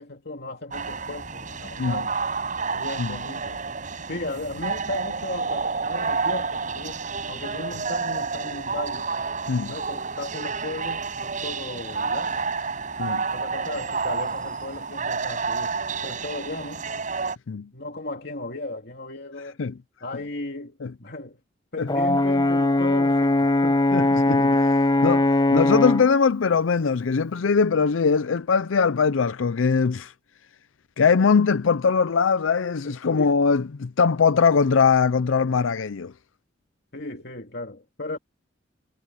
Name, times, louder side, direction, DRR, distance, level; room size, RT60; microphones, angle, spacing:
voice 1, 0.0-2.2 2.7-3.6 4.1-7.0 7.3-9.1 9.7-12.4 13.3-15.7 16.0-16.9 17.7-19.6 20.0-21.4 21.7-23.8 32.8-33.3 36.9-38.2, left 2 dB, 55° left, 2.8 m, -35 dB
sound 1, 0.7-17.4, right 4 dB, 40° right, 5.8 m, -30 dB
Brass instrument, 21.9-26.1, left 2 dB, 25° left, 1.0 m, -20 dB
voice 2, 23.9-24.7 25.0-30.1 31.0-36.1, left 5 dB, 90° left, 0.5 m, -21 dB
head